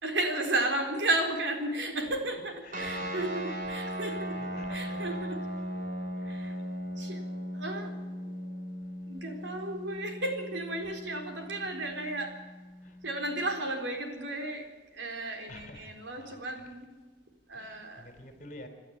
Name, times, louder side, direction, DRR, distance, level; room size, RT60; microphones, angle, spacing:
voice 1, 0.0-4.4 4.7-5.4 6.2-6.6 7.0-7.2 7.5-7.9 9.1-12.4 13.0-14.7 14.9-16.9 17.5-18.0, right 2 dB, 75° right, 4 dB, 4.1 m, -33 dB
voice 2, 2.6-3.7 4.0-5.2 5.6-5.7 6.1-6.2 12.0-12.1 12.8-13.0 15.4-16.7 17.5-18.7, left 1 dB, 45° left, 6 dB, 3.7 m, -50 dB
sound 1, 2.7-13.6, equal, 45° right, 3.8 m, -38 dB
26.5 x 12.5 x 8.8 m, 1.3 s
head